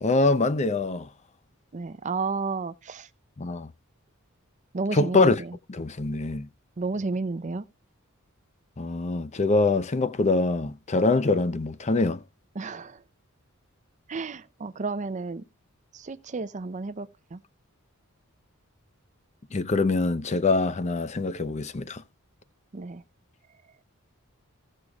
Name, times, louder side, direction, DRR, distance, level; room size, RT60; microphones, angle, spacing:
voice 1, 0.0-1.1 3.4-3.7 4.9-5.4 5.7-6.5 8.8-12.2 19.5-22.0, left 3 dB, 30° left, 0.6 m, -24 dB
voice 2, 1.7-3.1 4.7-5.6 6.8-7.6 12.5-13.0 14.1-15.4 15.9-17.4 22.7-23.0, right 3 dB, 35° right, 0.5 m, -32 dB
17.0 x 6.5 x 2.3 m
head